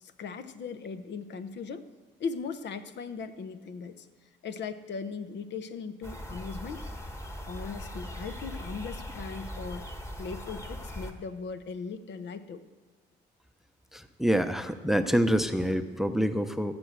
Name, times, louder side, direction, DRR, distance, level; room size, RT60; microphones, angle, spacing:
voice 1, 0.0-1.8 2.2-4.1 4.4-6.8 7.5-9.9 10.2-12.6, left 5 dB, 60° left, 10 dB, 0.9 m, -38 dB
sound 1, 6.0-11.1, equal, 15° left, 1.5 m, -40 dB
voice 2, 13.9-16.8, equal, ahead, 9 dB, 0.7 m, -26 dB
15.0 x 6.1 x 8.0 m, 1.3 s
cardioid pair, 90°, 20 cm